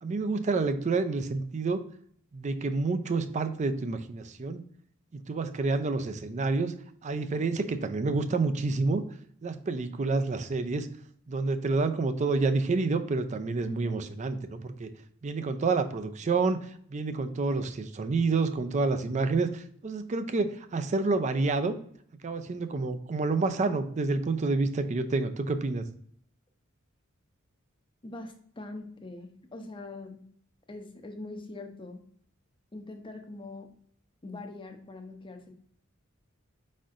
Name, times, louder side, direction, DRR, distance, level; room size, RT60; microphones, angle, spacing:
voice 1, 0.0-1.8 2.3-4.6 5.1-6.7 7.0-9.0 9.4-10.9 11.3-14.9 15.2-16.6 16.9-21.8 22.2-25.8, right 3 dB, 35° right, 10 dB, 0.4 m, -28 dB
voice 2, 13.7-14.0 28.0-30.2 30.7-32.0 32.7-33.7 34.2-35.5, left 2 dB, 25° left, 5 dB, 0.6 m, -43 dB
4.9 x 4.2 x 2.4 m, 0.63 s
head